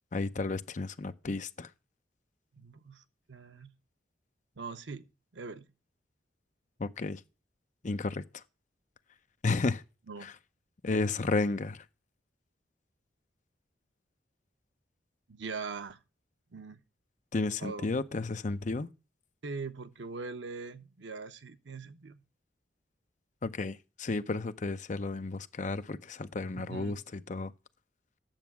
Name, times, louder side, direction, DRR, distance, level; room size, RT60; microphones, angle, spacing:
voice 1, 0.1-1.7 6.8-7.2 7.8-8.4 9.4-9.8 10.2-10.3 10.8-11.8 17.3-18.9 23.4-27.5, left 3 dB, 40° left, 0.6 m, -32 dB
voice 2, 2.5-3.0 3.3-3.7 4.6-5.1 5.3-5.7 10.1-10.3 15.3-16.0 16.5-16.8 17.6-17.9 19.4-22.2 26.6-27.0, right 4 dB, 85° right, 0.8 m, -41 dB
8.9 x 7.0 x 5.9 m
head